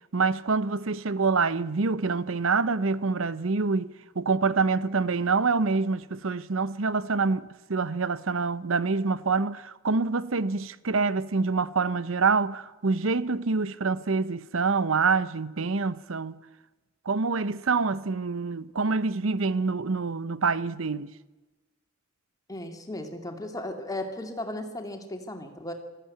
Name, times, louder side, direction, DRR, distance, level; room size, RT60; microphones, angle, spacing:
voice 1, 0.1-16.4 17.1-21.1, right 4 dB, 75° right, 0.8 m, -26 dB
voice 2, 22.5-25.7, left 1 dB, 20° left, 2.4 m, -36 dB
19.5 x 14.5 x 9.5 m
head